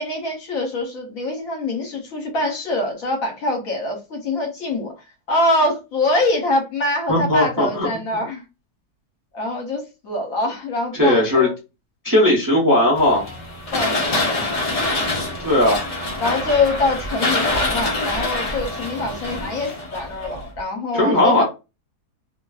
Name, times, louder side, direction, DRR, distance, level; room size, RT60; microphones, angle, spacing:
voice 1, 0.0-8.4 9.3-11.5 13.7-14.4 16.2-21.4, left 2 dB, 65° left, 1.2 m, -24 dB
voice 2, 7.1-7.9 10.9-11.5 12.0-13.2 15.4-15.9 20.9-21.4, left 1 dB, 20° right, 0.6 m, -17 dB
sound 1, 13.0-20.6, left 2 dB, 40° left, 0.5 m, -25 dB
2.8 x 2.5 x 2.3 m
omnidirectional pair, 1.7 m